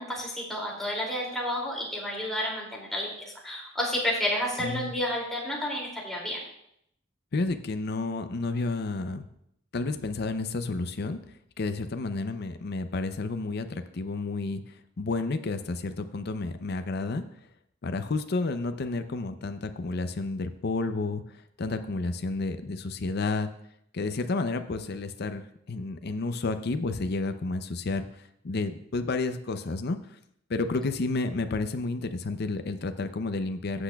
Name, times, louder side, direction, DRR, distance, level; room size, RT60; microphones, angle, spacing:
voice 1, 0.0-6.4, left 1 dB, ahead, -4 dB, 2.5 m, -31 dB
voice 2, 4.6-4.9 7.3-9.3 9.7-11.2 11.6-14.6 15.0-17.2 17.8-21.2 21.6-23.5 23.9-28.1 28.4-30.0 30.5-33.8, left 3 dB, 55° left, 9 dB, 0.5 m, -31 dB
14.5 x 8.0 x 2.3 m, 0.74 s
head